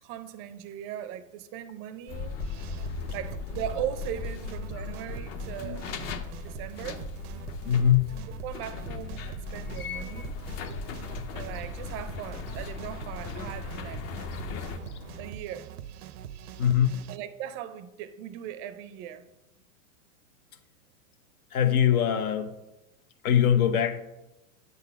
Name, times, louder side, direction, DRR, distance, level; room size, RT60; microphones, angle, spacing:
voice 1, 0.0-2.4 3.1-5.9 6.4-7.1 8.4-10.3 11.3-14.0 15.2-15.7 17.1-19.3, right 10 dB, 30° right, 0.4 m, -38 dB
sound 1, 2.1-14.8, left 5 dB, 35° left, 0.5 m, -38 dB
sound 2, 2.4-17.2, right 10 dB, 85° right, 0.6 m, -43 dB
voice 2, 7.6-8.1 16.6-16.9 21.5-22.5 23.2-24.0, left 9 dB, 75° left, 0.9 m, -22 dB
Fowl / Gull seagull, 9.4-15.3, left 6 dB, 50° left, 0.9 m, -48 dB
8.2 x 4.0 x 5.5 m
supercardioid pair, 130°, 44 cm